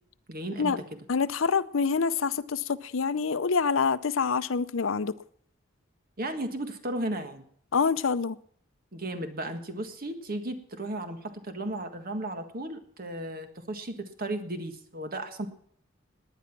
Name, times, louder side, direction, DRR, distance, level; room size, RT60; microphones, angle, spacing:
voice 1, 0.3-0.8 6.2-7.4 8.9-15.5, right 1 dB, 45° right, 1.7 m, -35 dB
voice 2, 1.1-5.2 7.7-8.4, left 5 dB, 70° left, 0.6 m, -26 dB
18.5 x 10.0 x 6.0 m
head